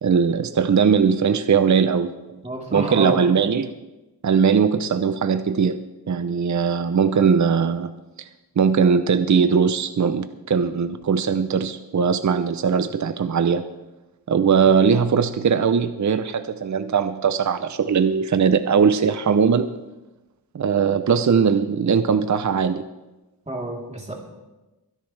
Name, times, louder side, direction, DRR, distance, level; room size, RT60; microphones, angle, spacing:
voice 1, 0.0-2.4 2.7-3.7 4.2-5.8 6.1-7.9 8.2-8.3 8.6-13.6 14.3-19.7 20.5-22.8, right 6 dB, 50° right, 10 dB, 0.6 m, -20 dB
voice 2, 2.4-3.2 23.5-24.1, right 1 dB, 20° right, -2 dB, 3.4 m, -29 dB
22.5 x 10.5 x 3.3 m, 1.1 s
wide cardioid pair, 75°, 38 cm